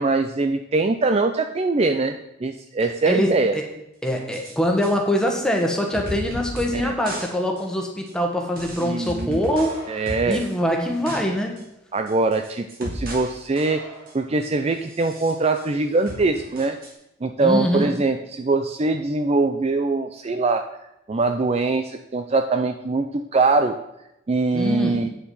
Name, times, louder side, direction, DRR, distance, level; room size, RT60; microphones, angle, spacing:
voice 1, 0.0-2.2 2.4-3.5 6.7-6.9 8.8-9.4 9.9-10.4 11.9-13.8 14.1-16.8 17.2-20.6 21.1-23.8 24.3-25.1, right 3 dB, 30° right, 7 dB, 0.4 m, -22 dB
voice 2, 3.0-3.6 4.0-11.6 17.4-17.9 24.5-25.1, equal, 5° left, 1 dB, 1.4 m, -24 dB
sound 1, 4.1-4.5 4.8-4.9 5.6-5.7 5.9-6.8 7.0-7.3 7.6-7.7 8.1-8.2 8.6-10.5 10.8-11.2 11.6-11.7 12.1-13.3 13.6-14.2 14.8-15.7 16.1-16.9, equal, 45° right, 2.5 m, -35 dB
9.3 x 7.0 x 5.5 m, 0.86 s
head